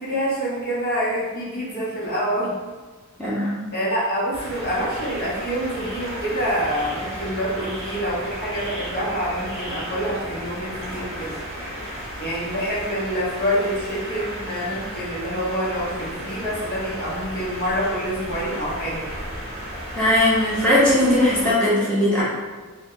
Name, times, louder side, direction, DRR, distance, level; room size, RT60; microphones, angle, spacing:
voice 1, 0.0-2.5 3.7-11.4 12.2-19.1, equal, 45° left, -6 dB, 0.8 m, -26 dB
voice 2, 3.2-3.6 19.9-22.2, left 1 dB, 5° left, -10 dB, 0.9 m, -19 dB
sound 1, 4.3-21.5, equal, 30° right, 0.7 m, -34 dB
3.2 x 2.1 x 3.8 m, 1.3 s
head